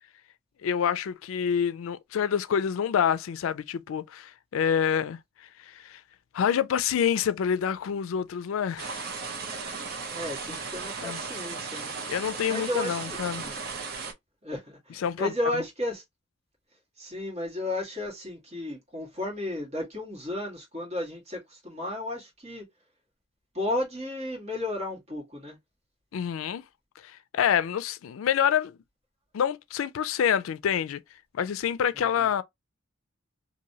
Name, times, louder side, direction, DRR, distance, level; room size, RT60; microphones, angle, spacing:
voice 1, 0.6-6.0 6.3-9.2 11.0-11.2 12.1-13.4 15.0-15.3 26.1-26.6 27.0-28.8 29.3-31.0 31.3-32.4, left 8 dB, 90° left, 0.4 m, -27 dB
sound 1, 8.8-14.1, right 5 dB, 50° right, 0.7 m, -36 dB
voice 2, 10.1-12.0 12.5-13.6 14.4-16.0 17.0-22.6 23.5-25.6 32.0-32.1, left 1 dB, 35° right, 1.6 m, -33 dB
3.0 x 2.6 x 2.7 m
head